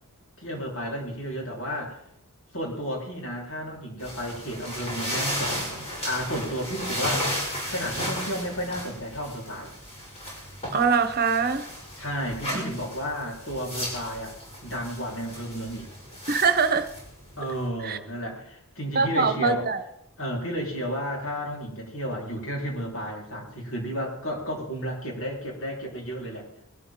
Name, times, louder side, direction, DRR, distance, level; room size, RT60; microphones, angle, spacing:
voice 1, 0.4-2.0 2.5-9.7 12.0-14.4 14.6-15.9 17.4-19.7 20.2-26.5, equal, 65° left, 4.4 m, -32 dB
sound 1, 4.0-17.7, equal, 30° left, 5.7 m, -34 dB
voice 2, 10.7-11.7 12.5-12.7 16.3-16.9 17.8-18.0 18.9-19.8, right 5 dB, 45° right, 1.0 m, -23 dB
20.5 x 12.5 x 3.8 m
head